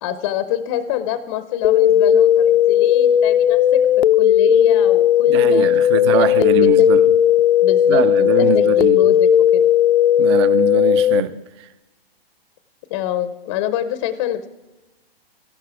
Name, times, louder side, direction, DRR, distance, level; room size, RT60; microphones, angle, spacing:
voice 1, 0.0-3.8 4.2-6.9 7.6-9.7 12.9-14.5, left 11 dB, 25° left, 0.5 m, -26 dB
sound 1, 1.6-11.2, left 10 dB, 75° left, 0.5 m, -15 dB
voice 2, 5.3-7.0 7.9-9.0 10.2-11.7, right 8 dB, 25° right, 0.4 m, -22 dB
13.5 x 11.5 x 4.8 m
hypercardioid pair, 140°, 31 cm